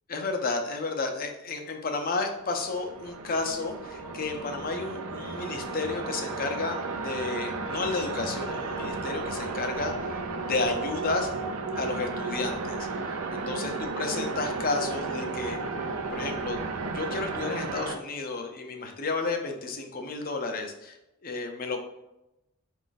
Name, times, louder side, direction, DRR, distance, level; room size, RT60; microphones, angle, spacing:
voice 1, 0.1-11.3 11.8-15.6 16.1-16.6 16.9-21.0 21.2-21.8, left 3 dB, 40° left, 4 dB, 0.6 m, -32 dB
sound 1, 2.4-18.0, right 3 dB, 80° right, 0.5 m, -34 dB
5.0 x 2.5 x 3.9 m, 0.91 s
head